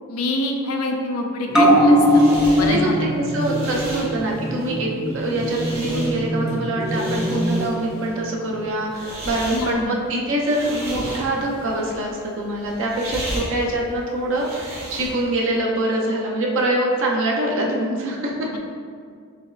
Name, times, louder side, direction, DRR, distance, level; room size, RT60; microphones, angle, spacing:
voice 1, 0.1-2.2 2.5-3.0 9.5-9.9, left 2 dB, 90° left, 2 dB, 0.5 m, -26 dB
sound 1, 1.5-8.4 8.8-8.9, equal, 5° right, 0.3 m, -21 dB
sound 2, 1.7-15.4, equal, 50° right, 1.4 m, -35 dB
voice 2, 3.1-18.5, right 1 dB, 65° right, -2 dB, 0.6 m, -24 dB
5.0 x 3.1 x 2.4 m, 2.1 s
head